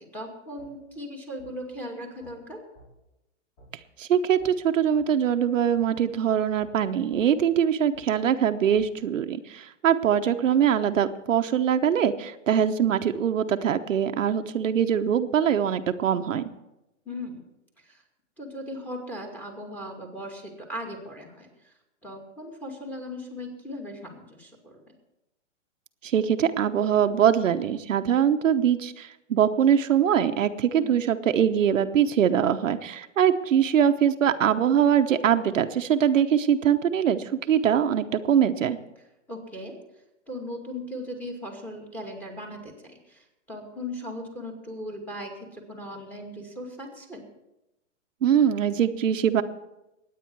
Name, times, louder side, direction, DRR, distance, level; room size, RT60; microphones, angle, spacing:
voice 1, 0.1-2.6 17.1-17.5 17.8-18.0 18.4-21.7 22.0-24.8 30.8-30.9 39.3-39.7 40.3-47.2, left 1 dB, 5° left, 2 dB, 2.2 m, -38 dB
sound 1, 0.6-0.7 1.4-1.5 2.2-2.4 2.8-2.9 3.6-3.7 4.4-4.5 4.9-5.1 5.8-5.9 6.6-6.7 7.1-7.3 7.9-8.1 8.8-8.9, equal, 40° left, 5.7 m, -52 dB
voice 2, 4.0-16.4 26.0-38.8 48.2-49.4, right 9 dB, 80° right, 7 dB, 1.0 m, -23 dB
21.5 x 9.3 x 4.6 m, 0.93 s
hypercardioid pair, 145°, 38 cm